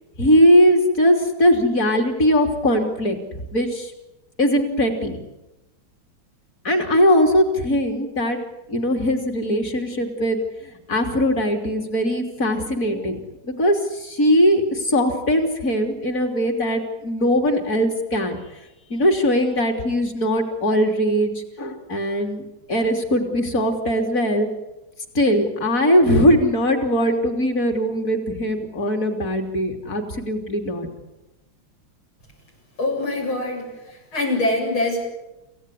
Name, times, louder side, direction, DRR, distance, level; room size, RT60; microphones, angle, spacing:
voice 1, 0.2-3.9 4.4-5.2 6.6-8.4 8.7-10.4 10.9-13.2 13.5-18.4 18.9-21.3 21.6-24.5 25.2-30.9, equal, 40° left, 4 dB, 3.6 m, -20 dB
voice 2, 32.8-35.0, left 2 dB, 80° left, 1 dB, 8.2 m, -24 dB
28.0 x 16.5 x 10.0 m, 1.0 s
omnidirectional pair, 2.3 m